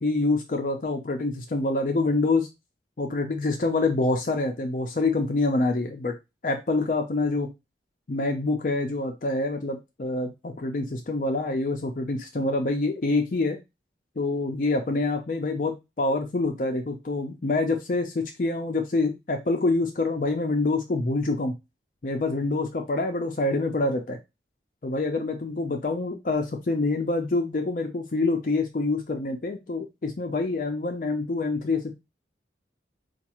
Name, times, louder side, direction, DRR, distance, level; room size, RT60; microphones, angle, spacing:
voice 1, 0.0-2.5 3.0-6.1 6.4-7.5 8.1-13.6 14.2-21.5 22.0-24.2 24.8-31.9, left 2 dB, 45° left, 3 dB, 0.5 m, -26 dB
4.3 x 2.3 x 2.9 m, 0.23 s
head